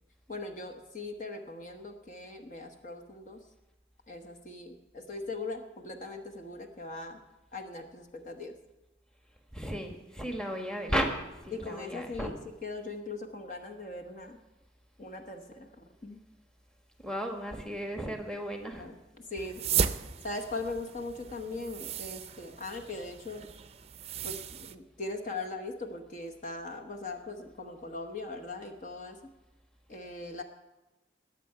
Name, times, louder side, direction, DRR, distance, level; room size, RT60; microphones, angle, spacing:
voice 1, 0.3-3.4 4.1-7.2 7.5-8.5 11.5-14.4 15.0-16.2 18.7-19.7 20.2-23.4 24.2-29.3 29.9-30.4, left 2 dB, 45° left, 5 dB, 1.1 m, -40 dB
voice 2, 9.5-11.1 11.4-12.3 17.0-18.9, equal, 5° left, 3 dB, 1.3 m, -34 dB
sound 1, 19.4-24.7, right 7 dB, 35° right, 0.5 m, -35 dB
20.0 x 7.7 x 5.7 m, 1.1 s
head